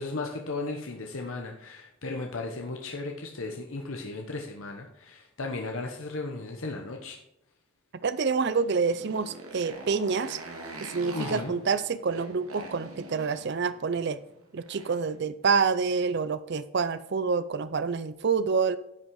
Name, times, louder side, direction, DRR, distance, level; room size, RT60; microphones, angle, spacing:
voice 1, 0.0-7.2 11.1-11.5, left 3 dB, 70° left, 2 dB, 1.1 m, -35 dB
voice 2, 8.0-10.4 10.9-14.2 14.5-18.8, right 5 dB, 50° right, 14 dB, 0.4 m, -27 dB
Motorcycle, 8.5-15.1, right 2 dB, 80° right, 2.1 m, -43 dB
10.5 x 6.3 x 4.7 m, 0.82 s
head